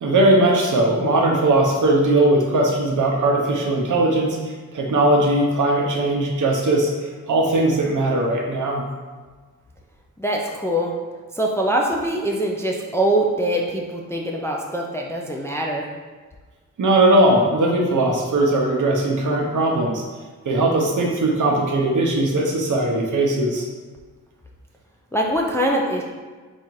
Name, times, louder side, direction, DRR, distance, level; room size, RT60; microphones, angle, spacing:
voice 1, 0.0-8.8 16.8-20.0 20.4-23.6, right 1 dB, 65° right, 0 dB, 0.8 m, -19 dB
voice 2, 10.2-10.9 11.3-15.9 25.1-26.0, right 1 dB, 10° left, -1 dB, 0.3 m, -23 dB
4.1 x 2.5 x 4.5 m, 1.4 s
wide cardioid pair, 160°, 33 cm